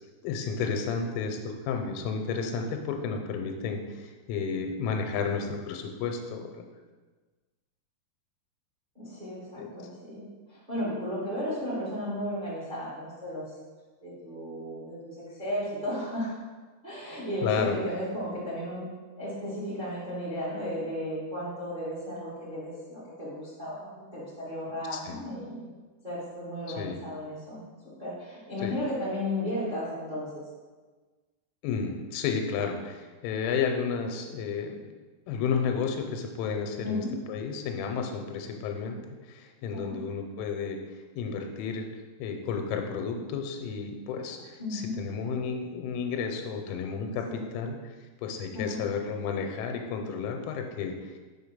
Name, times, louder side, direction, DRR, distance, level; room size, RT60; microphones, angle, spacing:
voice 1, 0.2-6.6 9.6-9.7 17.4-17.8 24.9-25.2 26.7-27.0 28.6-28.8 31.6-34.9 35.3-39.0 39.2-41.9 42.2-47.8 48.2-51.2, left 6 dB, 90° left, 4 dB, 3.1 m, -32 dB
voice 2, 8.9-13.4 14.0-16.3 16.8-18.8 19.2-25.7 26.0-27.6 28.0-30.4 36.8-37.1 39.7-40.0 44.6-44.9 47.3-47.4 48.5-48.8, equal, 30° right, -8 dB, 0.8 m, -34 dB
6.4 x 5.1 x 5.5 m, 1.3 s
omnidirectional pair, 5.6 m